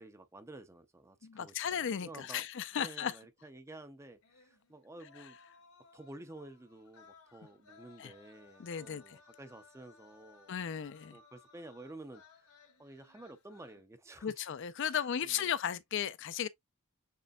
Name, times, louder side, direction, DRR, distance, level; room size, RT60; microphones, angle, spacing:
voice 1, 0.0-2.5 2.7-5.4 5.9-10.9 11.1-12.5 12.8-14.4 14.8-15.5, right 2 dB, 15° right, 0.5 m, -52 dB
voice 2, 1.2-3.1 8.0-8.1 8.6-9.2 10.5-11.2 14.2-16.5, left 8 dB, 55° left, 0.4 m, -35 dB
sound 1, 4.2-13.8, left 5 dB, 80° left, 1.4 m, -62 dB
6.7 x 3.2 x 2.2 m
head